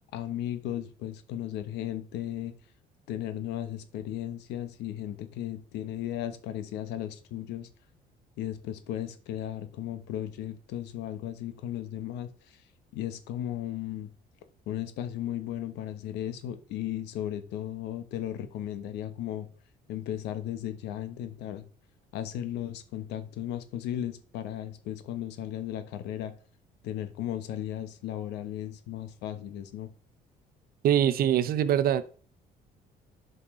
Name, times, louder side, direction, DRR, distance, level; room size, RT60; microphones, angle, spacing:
voice 1, 0.1-2.5 3.1-7.7 8.4-12.6 12.9-14.1 14.7-19.5 19.9-21.6 22.1-26.3 26.8-29.9, left 11 dB, 85° left, 1.1 m, -35 dB
voice 2, 30.8-32.0, right 10 dB, 60° right, 0.8 m, -23 dB
11.5 x 5.5 x 3.7 m
cardioid pair, 110°, 17 cm